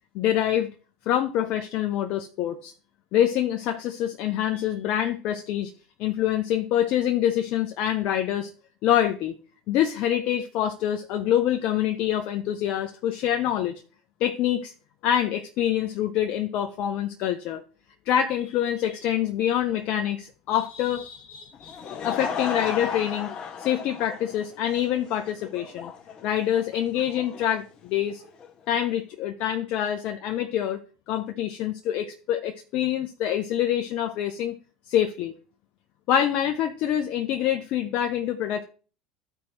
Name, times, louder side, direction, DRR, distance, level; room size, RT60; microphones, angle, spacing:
voice 1, 0.1-0.7 1.1-2.7 3.1-5.7 6.0-8.5 8.8-9.4 9.7-13.8 14.2-14.7 15.0-17.6 18.1-23.3 23.6-25.9 26.2-28.2 28.7-30.8 31.1-34.6 34.9-35.3 36.1-38.6, left 11 dB, 60° left, 0.5 m, -26 dB
Laughter / Crowd, 21.5-28.5, left 6 dB, 40° left, 1.0 m, -35 dB
13.0 x 4.4 x 2.9 m
hypercardioid pair, 80°, 2 cm